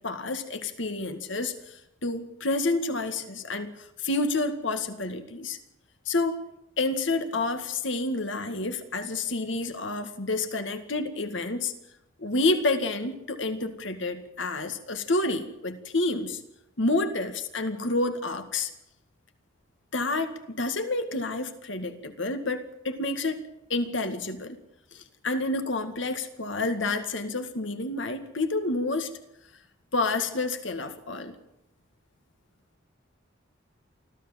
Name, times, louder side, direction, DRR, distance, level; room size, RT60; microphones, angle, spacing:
voice 1, 0.0-5.6 6.1-6.4 6.8-11.7 12.2-16.4 16.8-18.7 19.9-23.4 23.7-24.6 24.9-29.1 29.9-31.3, left 2 dB, 65° left, 8 dB, 2.0 m, -29 dB
25.0 x 15.5 x 7.5 m, 0.84 s
head